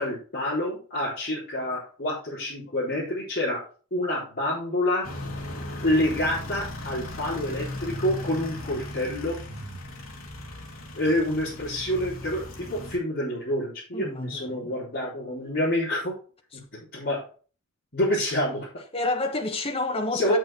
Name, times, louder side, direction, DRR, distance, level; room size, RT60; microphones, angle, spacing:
voice 1, 0.0-3.6 3.9-5.1 5.8-9.4 10.9-16.1 16.7-17.2 17.9-18.7 20.1-20.4, left 1 dB, 45° left, 3.7 m, -27 dB
sound 1, 5.0-13.0, left 1 dB, 75° left, 2.0 m, -37 dB
voice 2, 13.9-14.7 18.9-20.4, left 2 dB, 25° left, 1.2 m, -29 dB
8.0 x 6.3 x 4.3 m
head